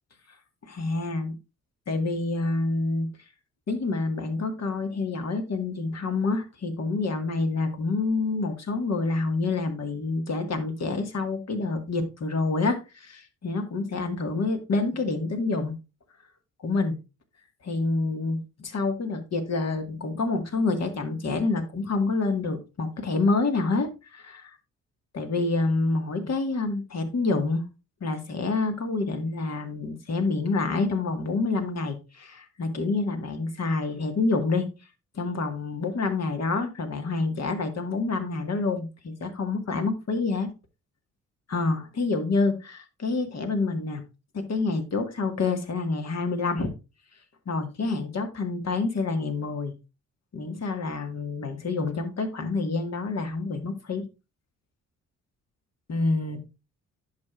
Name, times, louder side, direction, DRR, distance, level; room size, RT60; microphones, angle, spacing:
voice 1, 0.6-1.3 1.9-3.1 3.7-15.7 16.6-17.0 17.6-24.5 25.1-27.6 28.0-34.7 35.2-40.5 41.5-44.0 44.3-46.7 47.5-49.7 50.3-54.0 55.9-56.4, left 3 dB, 45° left, 1.7 m, -27 dB
10.5 x 6.1 x 2.5 m
hypercardioid pair, 45°, 35 cm